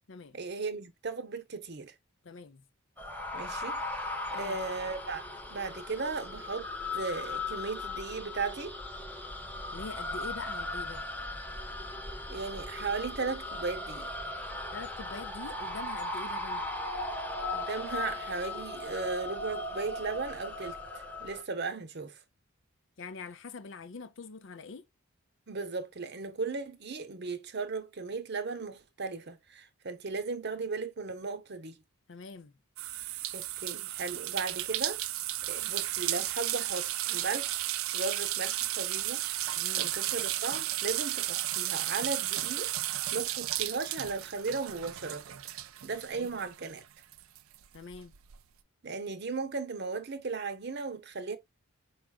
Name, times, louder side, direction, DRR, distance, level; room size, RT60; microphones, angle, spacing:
voice 1, 0.3-1.9 3.3-5.2 5.5-8.8 12.3-14.1 17.5-22.2 25.5-31.8 33.3-35.0 35.5-37.6 37.9-39.4 39.8-45.4 45.8-46.8 48.8-51.4, right 4 dB, 50° right, 0.8 m, -36 dB
voice 2, 2.2-2.6 4.3-4.6 9.7-11.0 14.7-16.7 23.0-24.9 32.1-32.5 39.5-39.9 46.1-46.3 47.7-48.1, left 4 dB, 55° left, 0.6 m, -44 dB
sound 1, 3.0-21.4, left 2 dB, 10° left, 0.7 m, -38 dB
sound 2, 32.8-46.8 47.1-48.3, right 14 dB, 70° right, 0.4 m, -34 dB
4.9 x 4.7 x 2.3 m
head